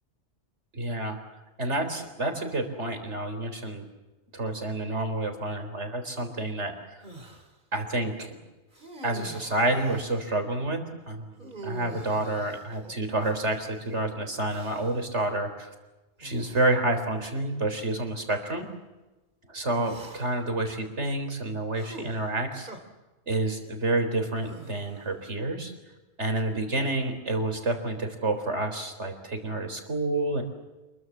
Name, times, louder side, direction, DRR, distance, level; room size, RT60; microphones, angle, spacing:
voice 1, 0.7-1.2 1.6-3.9 4.3-7.0 7.7-8.3 9.0-10.8 11.1-15.7 16.2-18.7 19.5-22.7 23.3-25.7 26.2-30.4, right 2 dB, 75° right, 6 dB, 4.3 m, -29 dB
sound 1, 7.0-7.5 8.7-10.3 11.4-13.7 14.5-15.1 16.2-16.7 17.6-17.7 19.8-20.5 21.7-22.8 24.4-25.2, right 2 dB, 45° right, 3.3 m, -45 dB
28.0 x 22.0 x 7.4 m, 1.1 s
omnidirectional pair, 1.2 m